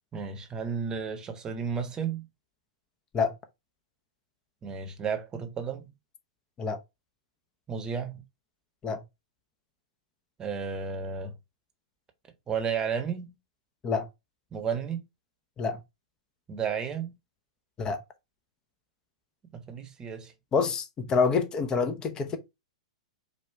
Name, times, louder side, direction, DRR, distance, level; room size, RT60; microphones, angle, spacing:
voice 1, 0.1-2.3 4.6-5.9 7.7-8.2 10.4-11.3 12.5-13.3 14.5-15.0 16.5-17.1 19.5-20.3, right 6 dB, 20° right, 1.0 m, -32 dB
voice 2, 20.5-22.4, left 5 dB, 20° left, 0.8 m, -27 dB
4.9 x 2.4 x 4.5 m
hypercardioid pair, 120°, 4 cm